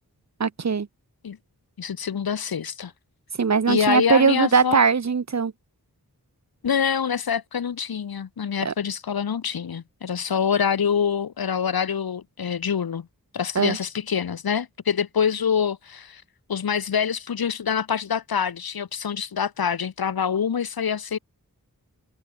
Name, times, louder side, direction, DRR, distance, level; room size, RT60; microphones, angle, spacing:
voice 1, 0.4-0.9 3.4-5.5 8.6-8.7 13.6-13.8, right 5 dB, 50° right, 0.8 m, -20 dB
voice 2, 1.8-2.9 3.7-4.8 6.6-13.1 13.3-16.2 16.5-21.2, left 7 dB, 75° left, 0.8 m, -25 dB
wide cardioid pair, 45°, 36 cm